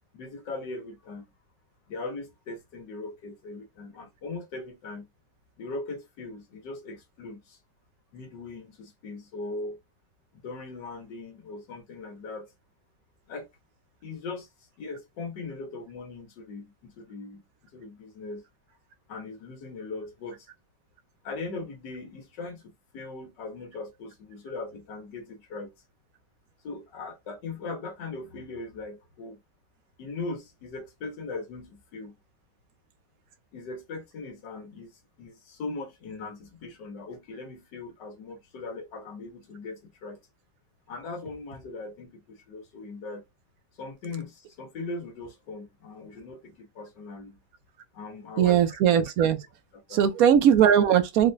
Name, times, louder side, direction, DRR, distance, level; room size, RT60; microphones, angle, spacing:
voice 1, 0.1-1.3 1.9-5.1 5.6-7.6 8.1-9.8 10.3-12.5 13.3-13.5 14.0-14.5 14.8-17.4 17.7-18.4 19.1-20.5 21.2-25.7 26.6-29.4 30.0-32.1 33.5-34.9 35.2-40.2 40.9-43.2 43.8-47.4 47.9-48.6 49.7-50.0, left 3 dB, 80° left, 1.5 m, -39 dB
voice 2, 48.4-49.4 49.9-51.3, right 9 dB, 65° right, 1.0 m, -20 dB
3.9 x 2.2 x 2.5 m
omnidirectional pair, 1.9 m